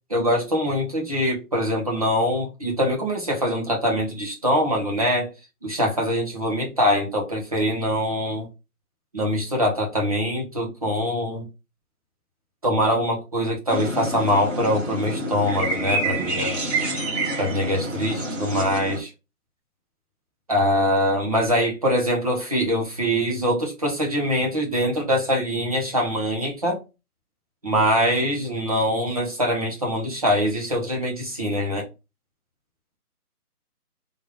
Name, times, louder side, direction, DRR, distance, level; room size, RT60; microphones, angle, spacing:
voice 1, 0.1-5.3 5.6-8.5 9.1-11.5 12.6-16.6 17.4-19.1 20.5-26.8 27.6-31.8, equal, 25° right, 1.1 m, -23 dB
sound 1, 13.7-19.0, right 1 dB, 50° right, 2.3 m, -27 dB
3.7 x 3.2 x 3.5 m
hypercardioid pair, 170°, 46 cm